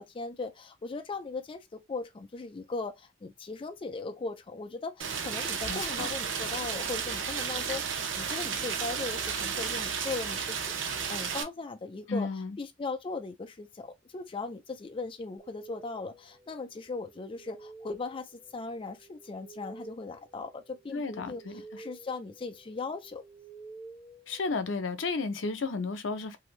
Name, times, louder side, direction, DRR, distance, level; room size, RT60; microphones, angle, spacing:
voice 1, 0.0-12.3 12.6-23.2, left 3 dB, 30° left, 0.4 m, -38 dB
Rain, 5.0-11.4, right 6 dB, 85° right, 0.6 m, -33 dB
voice 2, 5.7-6.1 12.1-12.6 20.9-21.6 24.3-26.4, left 4 dB, 75° left, 0.6 m, -33 dB
sound 1, 15.4-25.1, right 3 dB, 10° right, 0.6 m, -51 dB
2.6 x 2.6 x 3.0 m
head